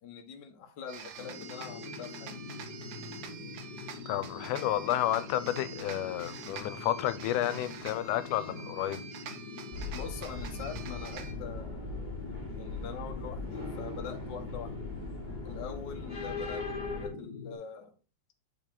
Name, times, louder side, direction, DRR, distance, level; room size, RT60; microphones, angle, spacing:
voice 1, 0.0-2.3 9.9-12.0 12.5-14.7 15.4-17.9, left 6 dB, 60° left, 1.1 m, -43 dB
sound 1, 0.9-11.3, right 7 dB, 75° right, 1.2 m, -46 dB
sound 2, 1.2-17.6, left 4 dB, 40° left, 1.5 m, -44 dB
voice 2, 4.1-9.0, left 13 dB, 90° left, 2.1 m, -31 dB
sound 3, 9.7-17.1, left 3 dB, 20° left, 1.7 m, -39 dB
6.5 x 5.2 x 3.7 m
omnidirectional pair, 3.5 m